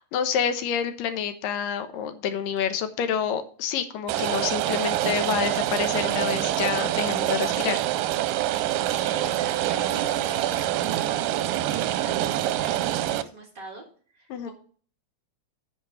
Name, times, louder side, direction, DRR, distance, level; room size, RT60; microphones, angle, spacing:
voice 1, 0.0-7.8 14.3-14.5, left 8 dB, 90° left, 9 dB, 2.7 m, -28 dB
Rain, 4.1-13.2, right 13 dB, 85° right, 2.3 m, -26 dB
voice 2, 8.4-14.5, right 1 dB, 35° right, -1 dB, 3.1 m, -44 dB
9.3 x 5.2 x 7.0 m, 0.43 s
omnidirectional pair, 3.8 m